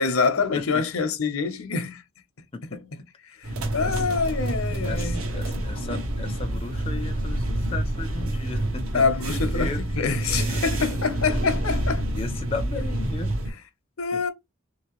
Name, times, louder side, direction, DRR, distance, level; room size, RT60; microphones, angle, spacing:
voice 1, 0.0-2.0 3.4-5.2 8.9-9.7 9.9-12.0 14.0-14.3, left 4 dB, 80° left, 0.8 m, -25 dB
voice 2, 0.5-0.8 2.5-2.8 3.3-4.1 4.8-9.3 9.5-9.8 10.5-10.9 12.1-13.3 14.1-14.2, left 4 dB, 25° left, 0.4 m, -36 dB
sound 1, 3.4-13.5, right 1 dB, 80° right, 0.9 m, -27 dB
3.3 x 2.9 x 3.0 m
head